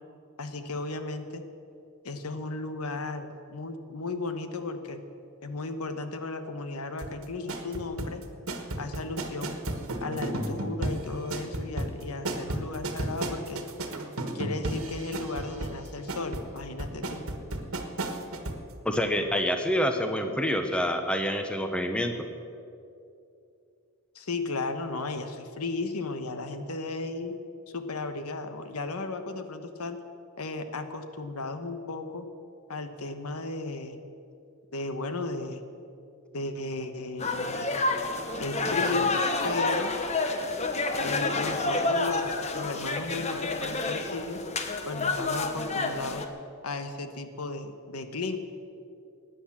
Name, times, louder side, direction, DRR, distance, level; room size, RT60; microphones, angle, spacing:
voice 1, 0.4-1.4 2.0-5.0 5.4-8.2 8.8-9.6 10.0-13.6 14.3-17.2 24.1-27.3 27.7-30.0 30.4-32.3 32.7-34.0 34.7-35.6 36.3-37.7 38.4-39.1 39.4-39.9 41.0-44.4 44.8-46.2 46.6-48.4, left 3 dB, 85° left, 8 dB, 1.2 m, -35 dB
sound 1, 7.0-18.6 18.9-19.0, right 1 dB, 70° right, 1.5 m, -33 dB
voice 2, 18.8-22.2, equal, 5° left, 6 dB, 0.9 m, -27 dB
sound 2, 37.2-46.3, left 3 dB, 30° left, 1.0 m, -29 dB
17.0 x 10.0 x 7.4 m, 2.6 s
head